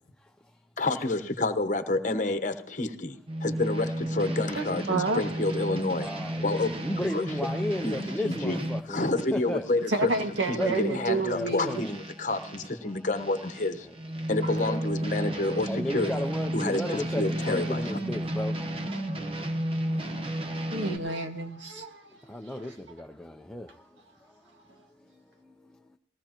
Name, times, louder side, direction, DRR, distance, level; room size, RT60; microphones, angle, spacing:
voice 1, 0.8-6.1 6.4-6.7 7.1-7.2 7.8-10.1 10.8-13.9 14.3-16.1 16.5-18.0, left 2 dB, 45° left, 1.0 m, -29 dB
sound 1, 3.3-12.7 13.1-21.0, right 1 dB, 30° right, 1.1 m, -33 dB
voice 2, 4.6-5.2 9.9-11.9 18.9-19.0 19.9-22.2 22.6-22.8, right 3 dB, 85° right, 1.9 m, -31 dB
voice 3, 5.9-9.0 9.3-9.6 10.6-12.0 13.8-13.9 15.7-18.7 22.3-23.7, left 1 dB, 5° left, 0.5 m, -33 dB
20.0 x 16.5 x 2.9 m
head